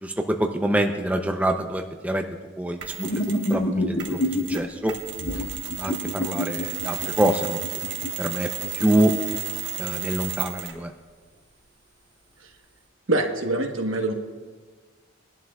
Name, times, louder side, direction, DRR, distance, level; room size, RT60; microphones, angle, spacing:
voice 1, 0.0-2.2 2.6-2.8 3.1-3.2 3.5-4.2 4.5-5.0 5.8-7.6 8.2-8.5 8.7-9.1 9.8-10.9, right 1 dB, 5° right, 4 dB, 0.5 m, -25 dB
Mechanisms, 2.8-3.6 4.0-10.9, right 10 dB, 55° right, 1.5 m, -33 dB
sound 1, 3.0-4.6 5.2-9.4, left 1 dB, 65° left, 1.5 m, -28 dB
voice 2, 13.1-14.1, right 2 dB, 75° right, 3 dB, 1.2 m, -24 dB
21.5 x 11.5 x 2.3 m, 1.4 s
head